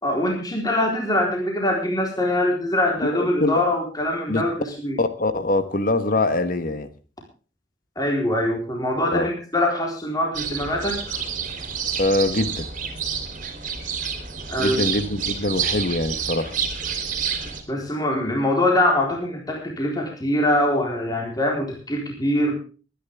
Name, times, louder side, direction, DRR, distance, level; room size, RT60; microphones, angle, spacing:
voice 1, 0.0-5.0 8.0-11.0 14.5-14.8 17.7-22.5, left 1 dB, 20° left, 0 dB, 3.9 m, -23 dB
voice 2, 3.1-3.6 4.3-4.4 5.0-6.9 9.1-9.3 12.0-12.7 14.6-16.6, left 2 dB, 45° left, 11 dB, 1.3 m, -23 dB
sound 1, 10.3-17.6, right 7 dB, 40° right, 3.3 m, -29 dB
23.0 x 10.5 x 3.5 m, 0.37 s
head